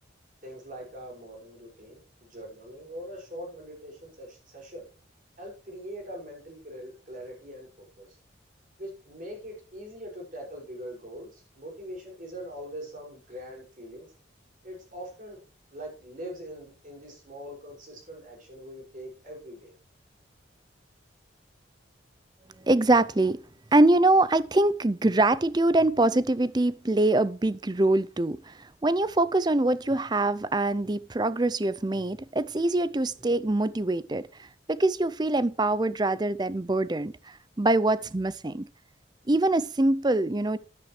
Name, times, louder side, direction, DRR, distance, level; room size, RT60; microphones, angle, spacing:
voice 1, 0.4-4.8 5.4-8.2 8.8-14.1 14.6-15.4 15.7-19.7, equal, 45° right, 6.0 m, -42 dB
voice 2, 22.6-23.4 23.7-34.2 34.7-38.6 39.3-40.6, right 2 dB, 20° right, 0.5 m, -24 dB
13.0 x 11.0 x 3.2 m
head